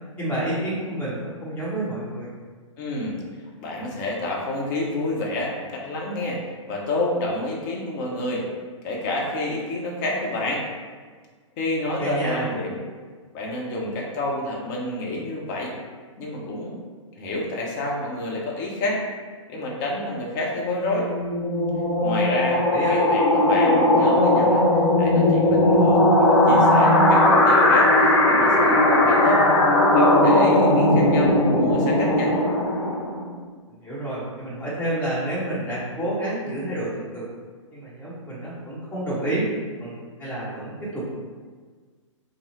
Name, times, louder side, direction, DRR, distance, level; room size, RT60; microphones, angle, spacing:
voice 1, 0.2-2.3 12.0-12.5 22.7-23.0 33.8-37.3 37.7-39.5 39.8-41.2, right 1 dB, 10° left, -9 dB, 1.3 m, -29 dB
voice 2, 2.8-3.2 3.6-6.4 6.7-8.4 8.8-10.6 11.6-12.8 13.3-15.7 16.2-16.8 17.1-19.0 19.5-21.1 22.0-22.6 22.9-24.6 25.0-29.4 29.9-32.3, left 2 dB, 35° left, -2 dB, 0.8 m, -28 dB
sound 1, 20.7-33.3, left 1 dB, 55° left, 1.0 m, -18 dB
5.3 x 2.0 x 3.0 m, 1.5 s
figure-of-eight pair, 120°, 17 cm